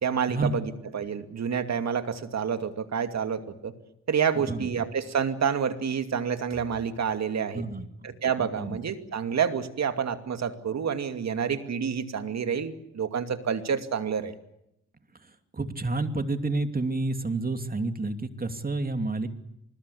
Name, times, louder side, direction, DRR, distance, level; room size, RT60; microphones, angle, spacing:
voice 1, 0.0-3.7 4.1-7.6 8.0-14.3, right 7 dB, 65° right, 8 dB, 2.5 m, -28 dB
voice 2, 4.4-4.7 7.5-7.9 8.4-8.8 15.2-19.3, right 3 dB, 30° right, 8 dB, 2.8 m, -30 dB
24.5 x 21.0 x 8.5 m, 0.81 s
cardioid pair, 60°, 29 cm